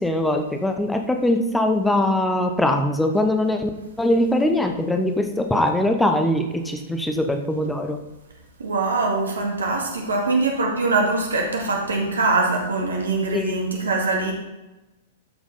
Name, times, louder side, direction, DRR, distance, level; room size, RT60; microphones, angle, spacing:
voice 1, 0.0-3.7 4.0-8.0 13.3-13.5, left 1 dB, 5° left, 5 dB, 0.8 m, -22 dB
voice 2, 8.6-14.3, right 3 dB, 70° right, 0 dB, 2.3 m, -23 dB
13.0 x 6.2 x 4.1 m, 1.0 s
figure-of-eight pair, 100°, 0 cm